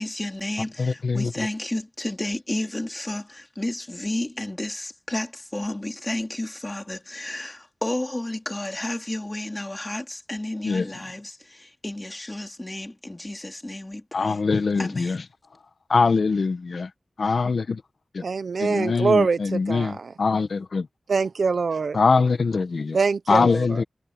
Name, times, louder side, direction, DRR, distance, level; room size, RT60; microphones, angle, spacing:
voice 1, 0.0-14.4 14.8-15.2, left 1 dB, 20° left, 3.9 m, -32 dB
voice 2, 0.8-1.5 10.6-10.9 14.1-15.2 15.9-16.9 17.2-17.8 18.1-18.2 18.6-20.9 21.9-23.0 23.3-23.8, left 4 dB, 75° left, 1.3 m, -23 dB
voice 3, 18.2-20.1 21.1-22.0 22.9-23.8, right 4 dB, 85° right, 0.9 m, -24 dB
wide cardioid pair, 90°, 0 cm